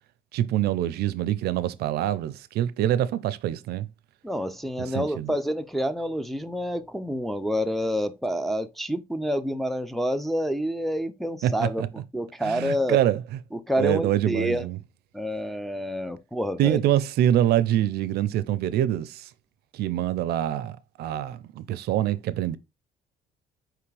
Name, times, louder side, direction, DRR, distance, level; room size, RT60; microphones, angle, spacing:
voice 1, 0.3-3.9 4.8-5.3 11.4-11.9 12.4-13.2 13.8-14.8 16.6-19.3 19.7-22.6, right 12 dB, 70° right, 0.5 m, -25 dB
voice 2, 4.2-11.8 12.1-13.0 13.5-14.7 15.1-16.8, equal, ahead, 0.4 m, -28 dB
4.8 x 3.4 x 3.2 m
cardioid pair, 110°, 17 cm